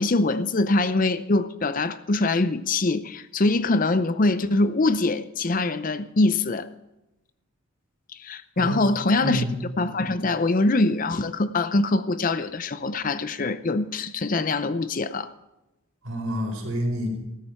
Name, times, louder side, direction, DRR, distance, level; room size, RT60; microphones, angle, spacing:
voice 1, 0.0-6.7 8.2-9.4 9.8-15.3, left 2 dB, 40° left, 0.6 m, -23 dB
voice 2, 9.2-9.6 16.0-17.1, equal, 75° right, 4.5 m, -28 dB
14.5 x 13.0 x 4.5 m
head